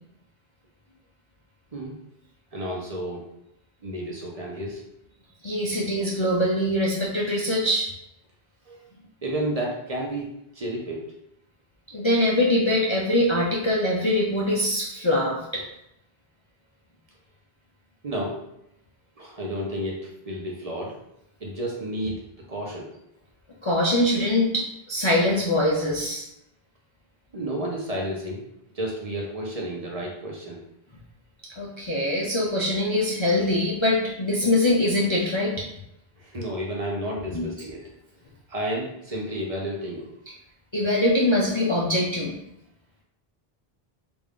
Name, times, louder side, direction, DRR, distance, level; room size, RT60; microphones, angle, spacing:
voice 1, 2.5-3.2 3.8-4.8 8.7-8.8 9.2-11.1 18.0-18.4 19.2-21.0 21.4-22.2 22.5-22.9 27.3-28.4 28.7-30.6 36.2-37.9 38.5-40.1, right 1 dB, 40° right, -2 dB, 0.7 m, -31 dB
voice 2, 5.4-7.9 11.9-15.6 23.6-26.2 31.5-35.6 37.3-37.4 40.7-42.3, left 1 dB, 40° left, -5 dB, 0.5 m, -23 dB
3.4 x 2.5 x 3.6 m, 0.79 s
omnidirectional pair, 1.0 m